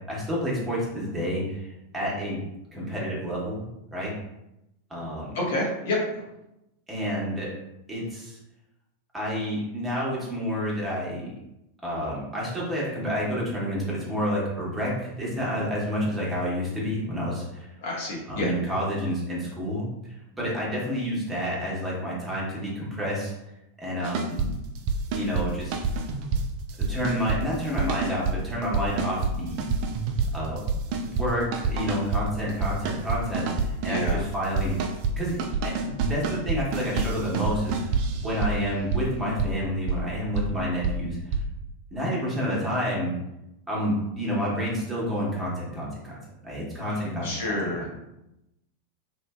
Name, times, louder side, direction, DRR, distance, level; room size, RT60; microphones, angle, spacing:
voice 1, 0.1-1.7 1.9-2.4 2.7-4.1 4.9-5.4 6.9-7.5 7.9-8.4 9.1-11.3 11.8-17.7 18.3-23.3 23.8-24.5 25.1-25.8 26.9-29.8 30.3-30.6 31.0-34.8 35.2-41.2 41.9-43.1 43.7-47.5, equal, 10° right, -6 dB, 1.1 m, -29 dB
voice 2, 5.3-6.0 17.8-18.5 33.8-34.2 47.2-47.9, left 2 dB, 55° left, -3 dB, 0.9 m, -28 dB
sound 1, 24.0-24.5 24.8-25.5 25.7-26.4 26.7-27.4 27.8-28.4 28.7-29.3 29.6-31.3 31.5-32.2 32.5-34.2 34.6-35.1 35.4-38.5 38.9-39.0 39.4-39.5 39.9-40.0 40.4-40.5 40.8-40.9 41.3-41.4, right 4 dB, 45° right, 0.3 m, -27 dB
2.9 x 2.5 x 2.3 m, 0.89 s
figure-of-eight pair, 90°, 0 cm